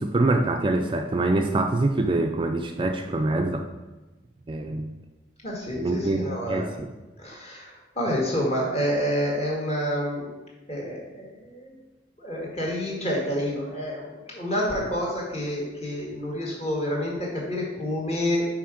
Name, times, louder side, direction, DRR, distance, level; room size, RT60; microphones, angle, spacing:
voice 1, 0.0-3.7 4.5-4.9 5.7-6.2 6.5-6.9, right 2 dB, 25° right, 4 dB, 0.4 m, -24 dB
voice 2, 5.4-6.7 7.2-10.3 10.7-11.8 12.2-18.5, equal, 35° left, -3 dB, 1.9 m, -28 dB
5.7 x 4.9 x 5.0 m, 1.1 s
head